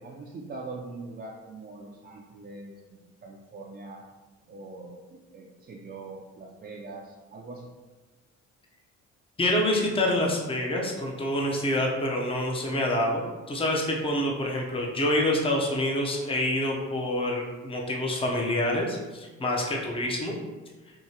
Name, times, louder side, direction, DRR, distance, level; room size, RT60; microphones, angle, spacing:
voice 1, 0.0-4.0 4.5-7.7 19.9-20.0, right 3 dB, 35° right, -2 dB, 0.5 m, -42 dB
voice 2, 9.4-20.3, left 1 dB, 20° left, -1 dB, 0.7 m, -27 dB
4.7 x 2.8 x 2.8 m, 1.3 s
cardioid pair, 90°, 30 cm